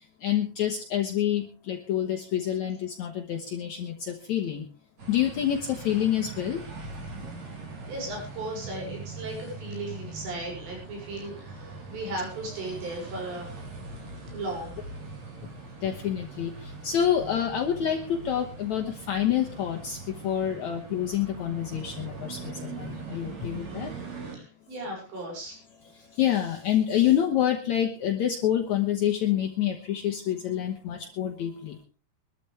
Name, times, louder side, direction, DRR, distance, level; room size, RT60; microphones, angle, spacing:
voice 1, 0.2-4.7 5.1-6.6 15.8-23.9 26.1-31.8, left 10 dB, 70° left, 3 dB, 1.7 m, -27 dB
sound 1, 5.0-24.4, right 4 dB, 40° right, 4.8 m, -41 dB
voice 2, 7.9-13.6 14.3-14.8 24.3-25.6, right 1 dB, 80° right, 0 dB, 8.7 m, -36 dB
22.0 x 13.5 x 3.4 m, 0.34 s
omnidirectional pair, 5.0 m